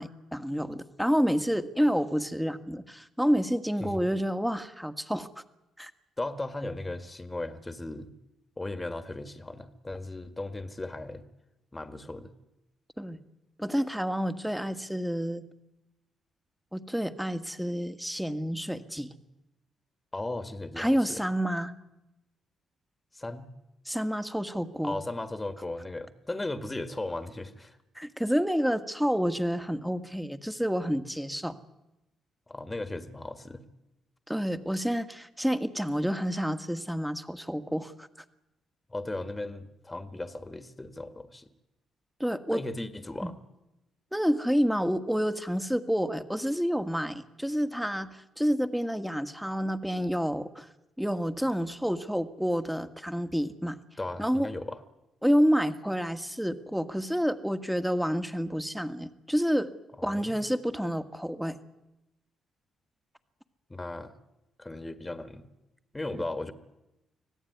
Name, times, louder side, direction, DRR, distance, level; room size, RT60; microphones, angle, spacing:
voice 1, 0.0-5.3 5.8-5.9 13.0-13.2 13.6-15.5 16.7-19.1 20.8-21.7 23.9-25.0 28.0-31.6 34.3-38.1 42.2-42.6 43.2-43.3 44.1-50.7 51.0-53.8 54.2-54.5 55.2-59.7 60.0-61.6 66.1-66.2, equal, ahead, 11 dB, 1.8 m, -29 dB
voice 2, 6.2-8.1 8.6-11.2 11.7-12.3 20.1-21.2 23.1-23.5 24.8-27.8 32.5-33.6 38.9-41.5 42.5-43.4 54.0-54.8 60.0-60.4 63.7-64.2 64.6-65.4 65.9-66.5, left 2 dB, 15° left, 10 dB, 1.8 m, -36 dB
25.5 x 17.0 x 9.5 m, 0.95 s
cardioid pair, 80°, 0 cm